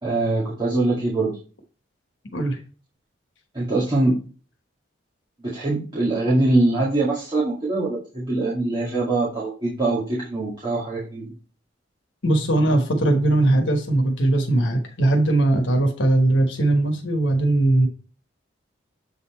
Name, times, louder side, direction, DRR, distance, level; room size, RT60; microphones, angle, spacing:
voice 1, 0.0-1.4 3.5-4.2 5.4-11.3, right 2 dB, 25° right, -7 dB, 2.1 m, -23 dB
voice 2, 12.2-17.9, right 2 dB, 70° left, 3 dB, 1.3 m, -20 dB
7.8 x 4.2 x 4.4 m, 0.37 s
head